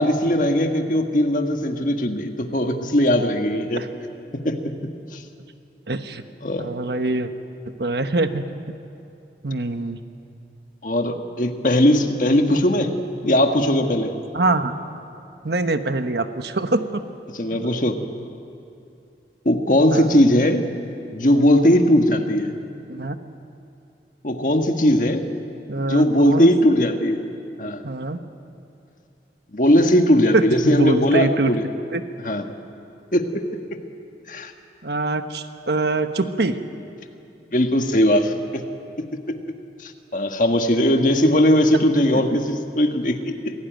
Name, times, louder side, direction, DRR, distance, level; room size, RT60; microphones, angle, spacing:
voice 1, 0.0-3.8 4.4-4.6 5.1-5.2 6.4-6.7 10.8-12.9 13.2-14.1 17.3-18.0 19.4-20.6 21.1-22.5 24.2-25.3 25.8-27.2 27.6-27.8 29.5-31.6 32.2-32.4 33.1-33.2 34.3-34.5 37.5-38.6 39.8-43.5, left 1 dB, 50° left, 5 dB, 1.6 m, -19 dB
voice 2, 5.9-6.2 6.6-7.3 7.7-8.4 9.4-10.0 12.5-12.6 14.3-14.7 15.4-17.0 17.5-17.7 19.9-20.2 22.9-23.2 25.7-26.5 27.8-28.2 30.3-31.5 31.9-32.0 34.8-36.6, right 2 dB, 70° right, 8 dB, 1.2 m, -24 dB
26.5 x 17.0 x 9.3 m, 2.6 s
head